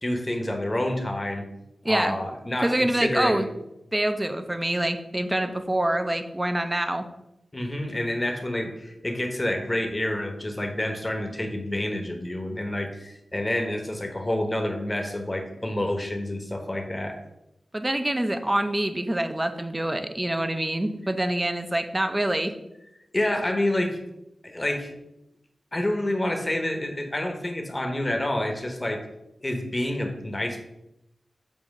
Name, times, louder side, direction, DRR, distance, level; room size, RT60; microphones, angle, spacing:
voice 1, 0.0-1.4 1.8-3.4 7.5-17.2 23.1-24.0 24.4-24.9 25.7-29.0 29.4-30.6, left 1 dB, 20° left, 4 dB, 0.9 m, -28 dB
voice 2, 1.8-2.2 2.6-3.5 3.9-7.0 17.7-22.5, right 1 dB, 15° right, 8 dB, 0.5 m, -26 dB
7.2 x 2.8 x 5.3 m, 0.86 s
wide cardioid pair, 120°, 0 cm